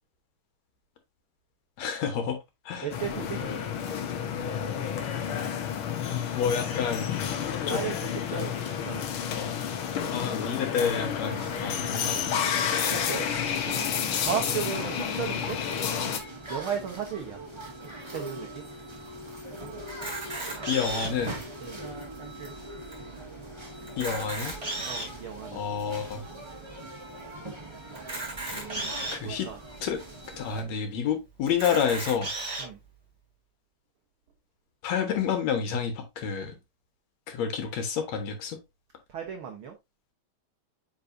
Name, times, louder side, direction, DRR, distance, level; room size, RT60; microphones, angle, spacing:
voice 1, 1.8-2.4 2.7-2.9 6.1-7.2 7.7-7.9 9.4-9.6 10.1-12.4 20.7-21.4 24.0-24.6 25.5-26.2 29.1-29.5 29.8-30.0 30.4-32.3 34.8-36.6 37.3-38.6, left 7 dB, 65° left, 2.2 m, -29 dB
voice 2, 2.8-3.6 7.7-9.1 10.0-10.2 12.9-13.3 14.2-15.6 16.5-17.4 18.1-18.6 21.6-21.8 24.8-25.6 28.5-28.9 29.2-29.6 32.6-32.8 39.1-39.7, right 8 dB, 80° right, 1.1 m, -35 dB
sound 1, 2.9-16.2, left 8 dB, 80° left, 1.2 m, -30 dB
sound 2, 10.9-30.6, right 1 dB, 25° right, 0.5 m, -41 dB
Camera, 19.9-21.3 21.9-22.0 22.2-22.4 22.9-23.0 23.8-25.2 25.8-25.9 27.9-29.2 29.9-30.0 30.3-30.4 31.5-32.6, right 2 dB, 10° right, 4.1 m, -34 dB
8.8 x 4.7 x 2.6 m
omnidirectional pair, 3.6 m